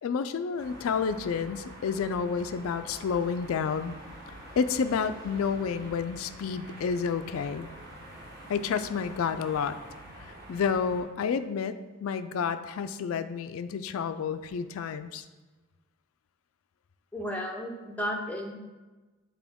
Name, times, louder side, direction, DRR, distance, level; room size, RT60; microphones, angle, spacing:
voice 1, 0.0-4.0 4.6-7.7 8.5-9.8 10.5-15.2, left 6 dB, 85° left, 10 dB, 0.3 m, -30 dB
sound 1, 0.6-11.0, right 1 dB, 45° right, 1.7 m, -46 dB
voice 2, 17.1-18.5, equal, 5° left, 1 dB, 0.6 m, -33 dB
8.3 x 3.8 x 3.5 m, 1.2 s
head